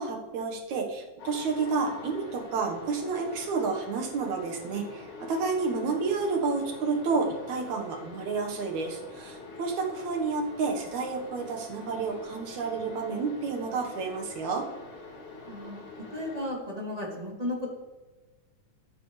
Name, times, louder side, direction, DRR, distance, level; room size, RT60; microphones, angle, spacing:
voice 1, 0.0-14.7, right 4 dB, 75° right, 2 dB, 2.7 m, -30 dB
sound 1, 1.2-16.5, left 3 dB, 85° left, 3.4 m, -45 dB
voice 2, 15.5-15.8 16.1-17.7, left 1 dB, 10° right, -3 dB, 2.8 m, -34 dB
21.5 x 9.5 x 3.3 m, 1.2 s
omnidirectional pair, 3.4 m